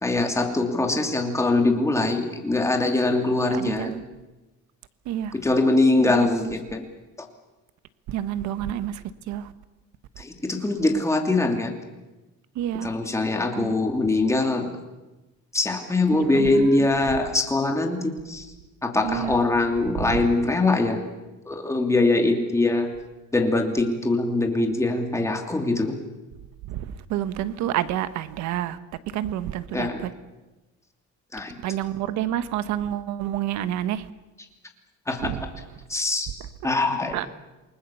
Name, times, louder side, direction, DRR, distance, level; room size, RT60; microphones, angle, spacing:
voice 1, 0.0-3.9 5.3-6.8 7.2-7.3 10.2-11.7 12.8-14.7 15.5-18.5 18.8-21.0 21.5-22.9 23.3-26.0 29.7-30.0 31.3-31.6 35.1-35.3 35.9-36.3 36.6-37.2, left 2 dB, 10° left, 2.7 m, -22 dB
voice 2, 3.5-4.0 5.0-5.4 6.1-6.5 8.1-9.5 12.5-13.0 13.5-13.7 16.1-16.9 19.0-19.4 20.0-20.2 26.6-28.8 29.1-30.1 31.6-34.1 35.2-35.4 37.1-37.3, right 11 dB, 65° right, 1.4 m, -29 dB
28.5 x 20.0 x 7.1 m
cardioid pair, 150°, 30 cm